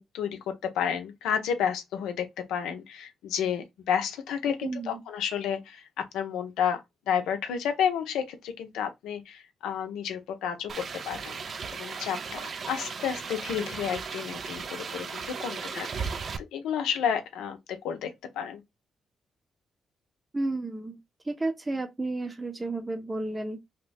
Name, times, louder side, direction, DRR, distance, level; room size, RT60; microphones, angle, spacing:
voice 1, 0.0-5.9 6.1-6.8 7.1-11.4 11.7-16.1 16.5-18.1 18.4-18.6, left 8 dB, 85° left, 0.5 m, -31 dB
voice 2, 4.6-5.0 20.3-21.0 21.2-23.6, right 2 dB, 25° right, 0.7 m, -32 dB
sound 1, 10.7-16.4, right 5 dB, 55° right, 0.4 m, -36 dB
2.9 x 2.0 x 3.3 m
supercardioid pair, 55°, 0 cm